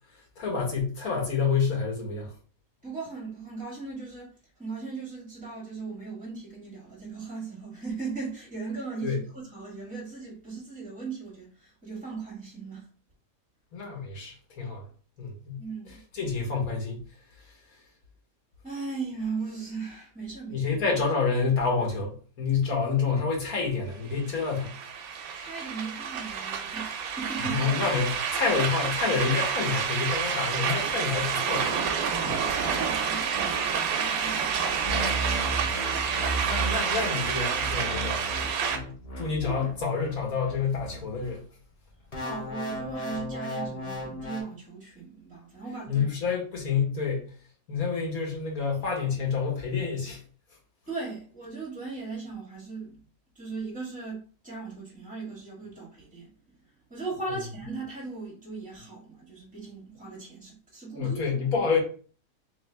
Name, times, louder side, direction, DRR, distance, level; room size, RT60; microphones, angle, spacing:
voice 1, 0.4-2.3 9.0-9.2 13.7-14.8 15.2-15.6 16.1-17.0 20.5-24.8 27.5-31.7 32.2-32.4 35.4-35.7 36.4-38.3 38.7-41.4 45.9-47.3 47.7-50.2 60.9-61.8, left 5 dB, 80° left, 1.7 m, -28 dB
voice 2, 2.8-12.9 15.6-16.0 18.6-20.7 25.4-27.7 32.4-35.2 39.4-39.6 42.2-46.1 50.9-53.0 53.4-56.3 56.9-61.2, right 4 dB, 5° right, 1.9 m, -38 dB
sound 1, 24.3-38.8, right 6 dB, 90° right, 1.1 m, -29 dB
sound 2, 34.8-41.4 42.1-44.4, right 1 dB, 30° left, 0.8 m, -35 dB
3.4 x 3.1 x 3.4 m
omnidirectional pair, 1.5 m